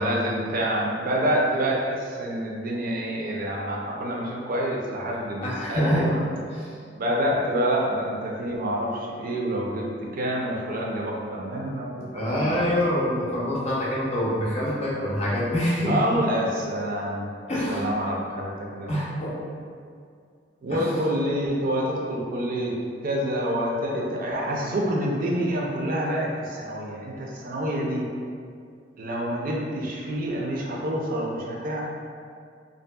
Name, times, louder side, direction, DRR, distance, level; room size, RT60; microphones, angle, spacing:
voice 1, 0.0-6.2 6.9-9.9 10.2-12.6 15.9-17.3 17.7-18.9 20.6-22.7 23.0-28.1 29.0-31.8, equal, 50° right, -2 dB, 0.4 m, -27 dB
voice 2, 5.4-6.7 12.1-16.0 17.5-17.9 18.9-19.3 20.7-21.0, equal, 35° left, -6 dB, 0.6 m, -26 dB
2.6 x 2.6 x 2.2 m, 2.2 s
head